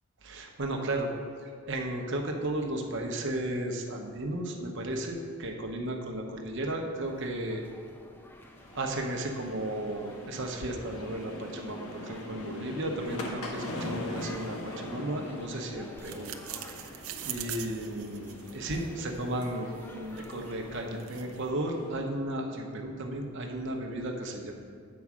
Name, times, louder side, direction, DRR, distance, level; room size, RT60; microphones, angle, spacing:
voice 1, 0.2-1.1 1.7-7.6 8.7-16.3 17.2-24.5, right 1 dB, 55° right, 2 dB, 0.9 m, -34 dB
sound 1, 7.0-21.0, left 1 dB, 10° left, 0.3 m, -51 dB
sound 2, 8.5-22.0, left 1 dB, 80° left, 1.1 m, -42 dB
sound 3, 16.0-21.5, right 10 dB, 70° right, 0.5 m, -44 dB
8.4 x 4.7 x 6.1 m, 2.3 s
head